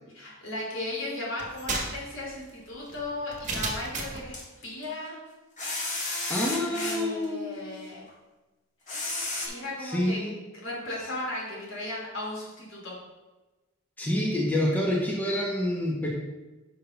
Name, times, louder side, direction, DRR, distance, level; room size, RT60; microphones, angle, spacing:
voice 1, 0.1-4.4 4.6-5.2 6.6-8.0 9.4-10.2 10.5-12.9, left 1 dB, 65° left, -4 dB, 2.8 m, -36 dB
sound 1, 1.4-4.3, right 3 dB, 35° right, 1.5 m, -34 dB
sound 2, 1.6-2.0 4.3-4.8 5.6-7.2 8.1-8.2 8.9-9.5, left 2 dB, 35° left, 1.7 m, -32 dB
voice 2, 6.3-7.7 9.8-10.3 14.0-16.1, left 1 dB, 10° left, -3 dB, 1.1 m, -27 dB
6.4 x 5.8 x 5.3 m, 1.1 s
head